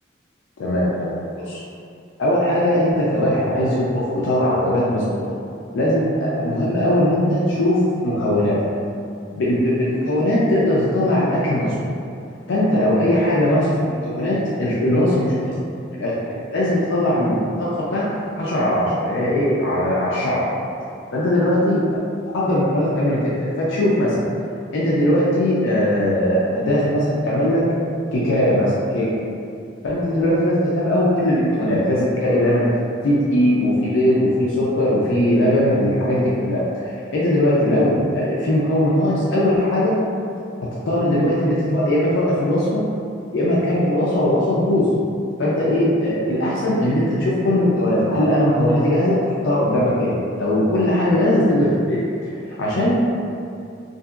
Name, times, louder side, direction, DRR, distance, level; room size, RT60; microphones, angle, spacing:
voice 1, 0.6-1.6 2.2-5.0 5.7-8.6 9.4-11.9 12.5-15.6 15.9-20.5 21.1-22.0 22.3-24.3 24.7-27.7 28.1-29.1 29.8-39.9 40.9-42.8 43.3-44.9 45.4-52.3 52.6-52.9, left 1 dB, 80° left, -7 dB, 0.4 m, -19 dB
2.8 x 2.6 x 2.3 m, 2.5 s
head